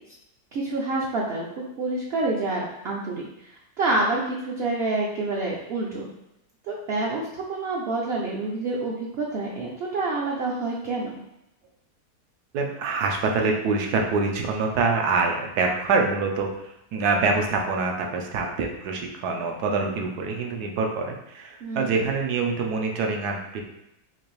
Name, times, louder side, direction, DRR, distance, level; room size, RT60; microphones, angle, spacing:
voice 1, 0.5-3.2 3.8-6.1 6.6-7.2 7.5-11.2 21.6-21.9, right 2 dB, 65° right, -3 dB, 0.6 m, -27 dB
voice 2, 12.5-16.5 16.9-23.6, right 4 dB, 85° right, 1 dB, 1.2 m, -25 dB
4.0 x 2.6 x 3.1 m, 0.84 s
omnidirectional pair, 1.6 m